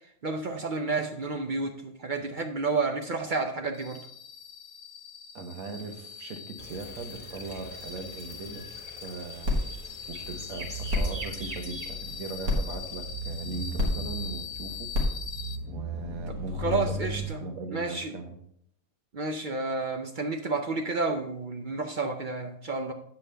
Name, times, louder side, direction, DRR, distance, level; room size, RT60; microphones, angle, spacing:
voice 1, 0.2-4.0 16.3-17.4 17.7-18.1 19.1-22.9, right 3 dB, 55° right, 5 dB, 0.5 m, -30 dB
sound 1, 3.7-15.6, left 6 dB, 85° left, 1.3 m, -42 dB
voice 2, 5.3-8.7 9.0-9.5 10.1-14.9 15.7-17.0 17.4-18.4, right 3 dB, 70° right, 5 dB, 1.5 m, -39 dB
sound 2, 6.6-13.7, right 1 dB, 25° right, 1.6 m, -45 dB
sound 3, 9.5-17.3, left 1 dB, 90° right, 2.1 m, -32 dB
8.5 x 7.1 x 3.3 m, 0.69 s
omnidirectional pair, 1.5 m